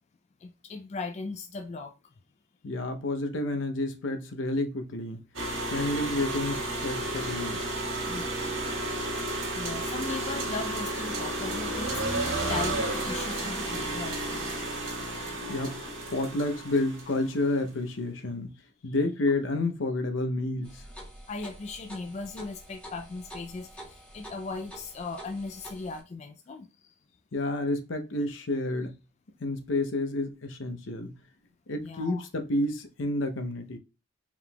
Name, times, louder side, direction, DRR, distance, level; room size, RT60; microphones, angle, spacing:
voice 1, 0.4-1.9 8.1-8.3 9.5-14.5 21.3-26.7 31.8-32.2, left 3 dB, 35° left, 0.3 m, -38 dB
voice 2, 2.6-5.2 5.7-7.6 15.5-18.6 18.8-20.8 27.3-29.0 29.4-31.2 31.7-33.8, left 2 dB, 70° left, 0.7 m, -30 dB
sound 1, 5.3-17.4, right 2 dB, 80° right, 1.5 m, -32 dB
Harp, 15.4-19.1 19.7-20.1 20.7-20.8, left 5 dB, 85° left, 2.0 m, -55 dB
sound 2, 20.6-26.0, equal, 5° left, 1.3 m, -47 dB
4.8 x 3.5 x 2.2 m
head